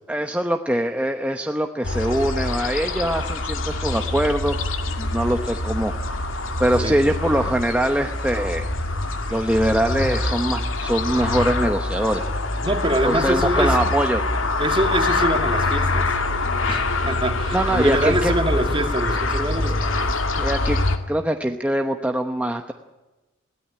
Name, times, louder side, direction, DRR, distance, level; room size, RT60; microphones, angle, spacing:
voice 1, 0.1-4.6 5.0-5.9 6.6-8.7 9.3-12.2 13.0-14.2 17.5-18.3 20.4-20.8 21.1-22.7, right 1 dB, 5° right, 4 dB, 0.9 m, -23 dB
sound 1, 1.8-21.0, left 2 dB, 80° left, 2.1 m, -24 dB
voice 2, 12.6-13.8 14.6-16.1 16.7-19.9, right 1 dB, 25° right, 5 dB, 2.3 m, -24 dB
21.5 x 16.5 x 10.0 m, 1.1 s
head